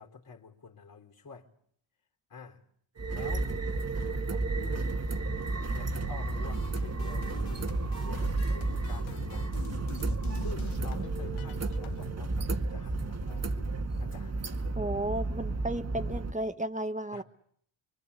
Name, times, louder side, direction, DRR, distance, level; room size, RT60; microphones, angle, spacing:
voice 1, 0.0-1.5 2.3-2.6 3.1-3.5 4.3-4.9 5.7-7.7 8.0-9.6 10.4-14.4 17.1-17.2, left 5 dB, 40° left, 3.7 m, -48 dB
sound 1, 3.0-16.3, right 3 dB, 30° right, 1.9 m, -32 dB
sound 2, 6.5-12.1, left 8 dB, 70° left, 2.3 m, -46 dB
voice 2, 14.7-17.2, right 1 dB, 15° right, 1.6 m, -34 dB
25.5 x 24.0 x 8.4 m
cardioid pair, 80°, 49 cm